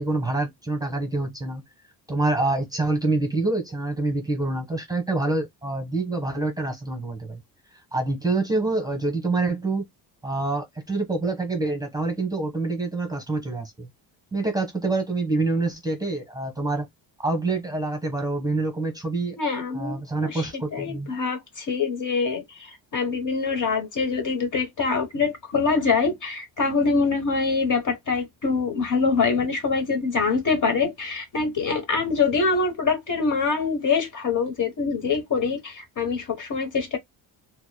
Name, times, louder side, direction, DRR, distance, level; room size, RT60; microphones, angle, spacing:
voice 1, 0.0-1.6 2.1-7.4 7.9-9.8 10.2-13.9 14.3-16.9 17.2-19.4 19.7-21.1, right 2 dB, 10° right, 0.9 m, -26 dB
voice 2, 19.4-37.0, left 4 dB, 40° left, 1.0 m, -24 dB
2.9 x 2.2 x 2.2 m
supercardioid pair, 70°, 46 cm